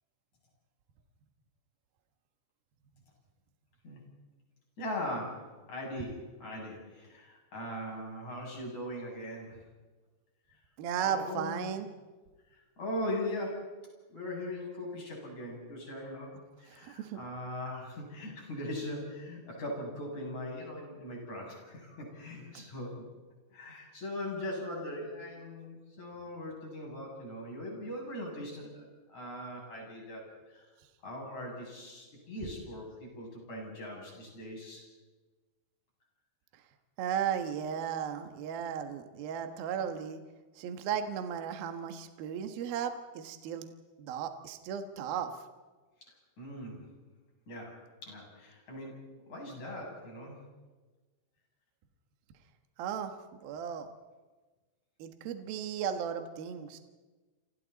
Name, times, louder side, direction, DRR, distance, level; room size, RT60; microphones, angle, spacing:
voice 1, 4.8-9.6 11.0-11.7 12.8-13.7 14.1-23.0 23.5-28.9 29.1-30.2 30.5-30.7 31.0-34.8 46.4-46.8 47.5-49.0 49.3-50.4, left 1 dB, 40° left, -1 dB, 8.3 m, -40 dB
voice 2, 10.8-11.9 16.7-17.2 22.5-22.6 37.0-40.2 40.6-43.7 44.0-45.3 52.8-53.1 53.4-53.9 55.0-56.8, right 8 dB, 65° right, 6 dB, 2.9 m, -35 dB
29.0 x 27.5 x 4.1 m, 1.3 s
omnidirectional pair, 5.3 m